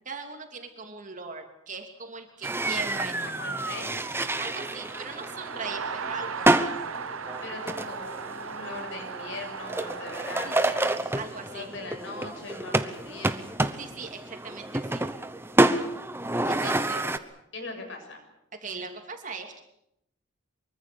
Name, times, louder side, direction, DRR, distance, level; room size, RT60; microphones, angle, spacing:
voice 1, 0.0-3.2 3.5-3.6 4.4-6.7 10.4-11.7 13.8-15.1 16.5-17.0 18.6-19.6, right 4 dB, 35° right, 4 dB, 2.9 m, -40 dB
sound 1, 2.4-17.2, right 2 dB, 10° right, 1.0 m, -29 dB
voice 2, 3.2-3.9 7.4-13.4 16.4-17.1 17.5-18.2, left 3 dB, 60° left, 4 dB, 6.9 m, -40 dB
sound 2, 3.4-11.0, right 5 dB, 80° right, 1.1 m, -38 dB
24.5 x 23.5 x 7.0 m, 0.79 s
head